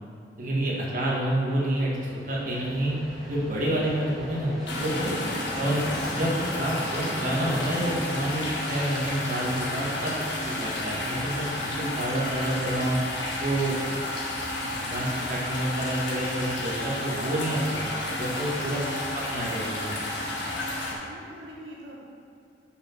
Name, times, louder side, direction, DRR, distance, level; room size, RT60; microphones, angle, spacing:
voice 1, 0.4-2.9 3.3-4.5 4.8-5.2 5.6-5.8 6.1-10.1 10.5-13.0 13.4-13.8 14.6-18.8 19.3-19.9, right 1 dB, 50° right, -5 dB, 1.8 m, -28 dB
Vehicle, 1.4-17.7, equal, ahead, 2.0 m, -40 dB
sound 1, 4.7-20.9, left 1 dB, 90° left, 1.6 m, -31 dB
voice 2, 5.1-5.4 13.9-14.1 20.4-22.0, right 1 dB, 85° right, -4 dB, 1.3 m, -45 dB
6.8 x 5.8 x 6.0 m, 2.4 s
head